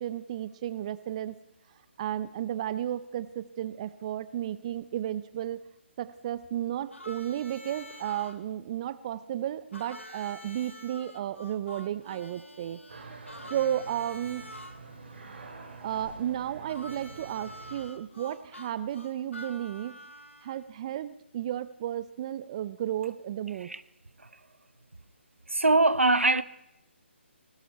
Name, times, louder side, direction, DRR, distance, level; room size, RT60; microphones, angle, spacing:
voice 1, 0.0-1.4 2.0-5.6 6.0-12.8 13.5-14.4 15.8-19.9 20.4-23.7, right 11 dB, 30° right, 0.5 m, -33 dB
Harmonica, 6.9-8.3 9.7-14.7 16.7-20.6, left 1 dB, 85° left, 2.4 m, -47 dB
sound 1, 12.9-17.9, right 3 dB, 55° right, 3.1 m, -46 dB
voice 2, 25.5-26.4, right 2 dB, 80° right, 0.9 m, -23 dB
19.5 x 16.0 x 4.2 m
figure-of-eight pair, 145°, 7 cm